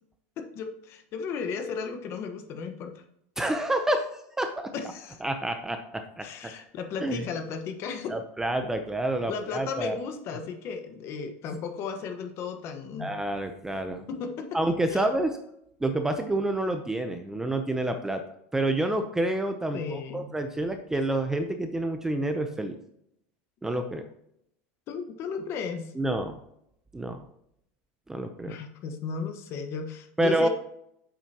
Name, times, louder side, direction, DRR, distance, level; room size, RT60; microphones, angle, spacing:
voice 1, 0.4-3.0 4.7-5.2 6.2-8.2 9.3-13.1 14.1-14.5 14.9-15.0 19.7-20.3 24.9-25.9 28.5-30.5, left 5 dB, 40° left, 6 dB, 1.2 m, -35 dB
voice 2, 3.4-4.7 5.2-6.5 7.0-7.2 8.1-10.0 13.0-14.0 14.5-15.4 15.8-18.2 18.5-22.8 23.6-24.0 25.9-26.4 26.9-27.2 28.1-28.6 30.2-30.5, right 1 dB, 5° right, 6 dB, 0.6 m, -28 dB
8.7 x 7.6 x 2.9 m, 0.74 s
supercardioid pair, 150°, 7 cm